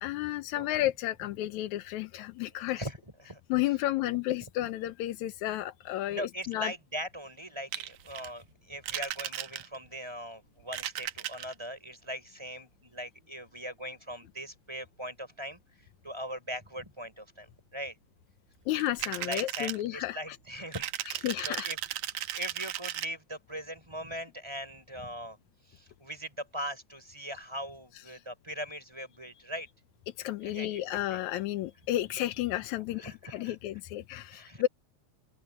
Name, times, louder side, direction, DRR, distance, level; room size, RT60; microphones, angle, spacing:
voice 1, 0.0-2.8 3.5-6.7 18.7-20.4 21.2-21.7 30.2-34.7, left 15 dB, 85° left, 2.2 m, -32 dB
voice 2, 0.5-0.9 2.5-3.4 6.1-18.0 19.2-21.8 22.3-25.4 25.6-29.7 30.4-31.2 33.0-33.6 34.3-34.7, equal, 10° right, 5.1 m, -40 dB
sound 1, 7.7-8.3 8.8-9.9 10.6-11.6 18.8-19.8 20.7-23.1, right 13 dB, 80° right, 2.1 m, -36 dB
open air
omnidirectional pair, 3.3 m